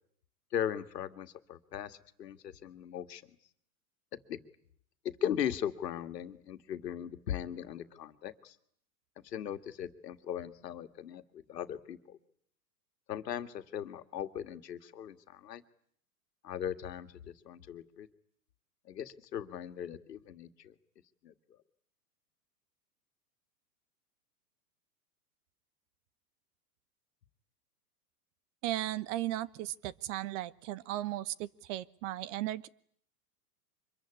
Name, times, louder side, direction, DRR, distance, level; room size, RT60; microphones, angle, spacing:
voice 1, 0.5-3.2 4.3-4.4 5.2-8.6 9.2-12.2 13.1-15.6 16.4-18.1 18.9-20.7 21.2-21.3, left 9 dB, 80° left, 8 dB, 2.0 m, -38 dB
voice 2, 28.6-32.7, right 14 dB, 50° right, 18 dB, 1.1 m, -36 dB
25.0 x 22.5 x 9.8 m, 0.64 s
hypercardioid pair, 120°, 48 cm